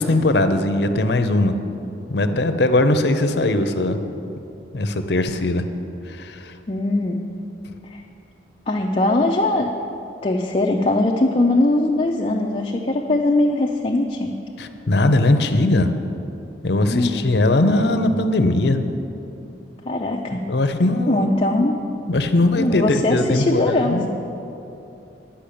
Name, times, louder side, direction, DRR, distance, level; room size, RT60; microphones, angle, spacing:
voice 1, 0.0-1.5 2.1-4.0 4.7-5.6 6.1-6.5 14.6-15.9 16.6-18.8 20.5-21.3 22.1-24.1, left 2 dB, 65° left, 9 dB, 0.7 m, -19 dB
voice 2, 6.7-7.2 7.9-8.0 8.7-9.7 10.2-14.3 16.7-17.3 19.9-20.4 21.1-21.9 22.6-24.0, left 2 dB, 30° left, 0 dB, 0.5 m, -21 dB
10.5 x 5.7 x 8.4 m, 2.8 s
head